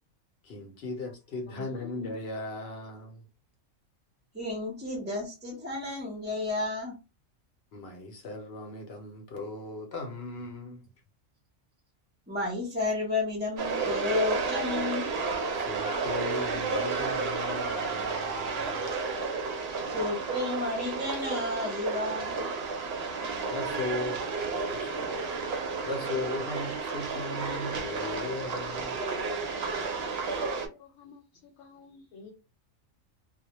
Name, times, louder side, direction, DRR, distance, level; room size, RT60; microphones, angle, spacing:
voice 1, 0.4-3.2 7.7-10.9 14.7-14.8 15.5-18.9 23.5-24.2 24.7-25.3 25.8-29.0, left 2 dB, 60° left, 0.8 m, -37 dB
voice 2, 1.5-1.9 30.7-32.3, left 3 dB, 85° left, 1.0 m, -51 dB
voice 3, 4.3-7.0 12.3-15.1 19.9-22.4, left 3 dB, 15° right, 0.3 m, -32 dB
sound 1, 13.6-30.7, right 4 dB, 65° right, 0.7 m, -32 dB
2.1 x 2.1 x 2.8 m
omnidirectional pair, 1.4 m